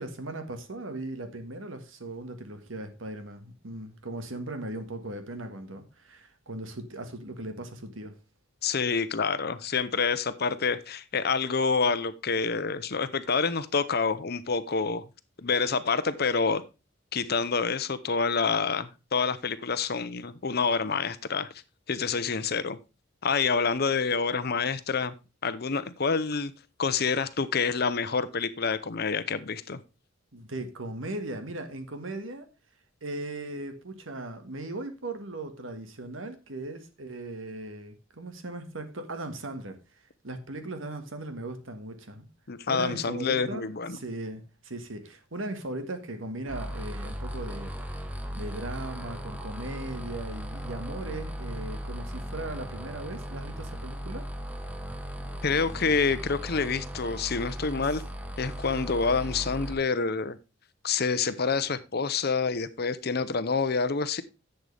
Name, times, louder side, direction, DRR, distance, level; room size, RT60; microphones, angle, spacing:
voice 1, 0.0-8.1 30.3-32.5 33.0-39.8 40.2-42.3 42.7-47.7 48.4-54.3, right 2 dB, 85° right, 1.7 m, -38 dB
voice 2, 8.6-15.0 15.4-16.6 17.1-21.5 21.9-22.8 23.2-25.1 25.4-26.5 26.8-29.8 42.5-44.0 55.4-58.0 58.4-60.4 60.8-64.2, left 5 dB, 55° left, 0.8 m, -27 dB
sound 1, 46.5-59.7, equal, 10° right, 1.2 m, -37 dB
11.0 x 7.9 x 3.4 m
head